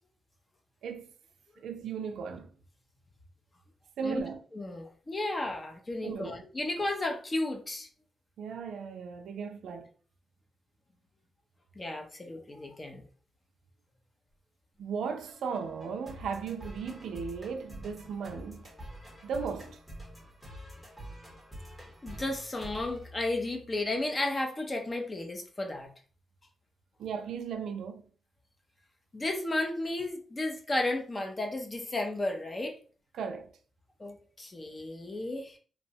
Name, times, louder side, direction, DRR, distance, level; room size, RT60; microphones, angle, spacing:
voice 1, 0.8-1.1 1.6-2.5 4.0-4.4 6.0-6.4 8.4-9.9 14.8-18.7 19.2-19.8 27.0-28.1 33.1-33.5, right 6 dB, 85° right, 0.4 m, -36 dB
voice 2, 4.5-7.9 11.8-13.0 22.0-25.9 29.1-32.7 34.0-35.6, left 2 dB, 20° left, 0.4 m, -33 dB
sound 1, 15.3-23.8, equal, ahead, 0.8 m, -47 dB
2.9 x 2.1 x 2.7 m
wide cardioid pair, 175°, 0 cm